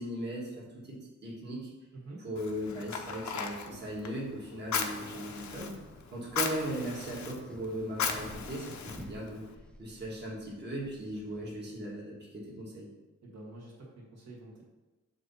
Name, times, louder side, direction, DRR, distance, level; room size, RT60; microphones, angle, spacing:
voice 1, 0.0-1.7 2.2-5.8 6.1-9.5 9.8-12.9, right 1 dB, 35° right, -4 dB, 1.5 m, -38 dB
voice 2, 1.9-2.2 13.2-14.6, right 2 dB, 60° right, -4 dB, 1.4 m, -47 dB
Fire, 2.4-9.5, left 6 dB, 70° left, 0.6 m, -38 dB
sound 1, 4.5-11.9, equal, 5° left, 0.4 m, -53 dB
7.6 x 2.7 x 5.5 m, 1.1 s
wide cardioid pair, 180°, 29 cm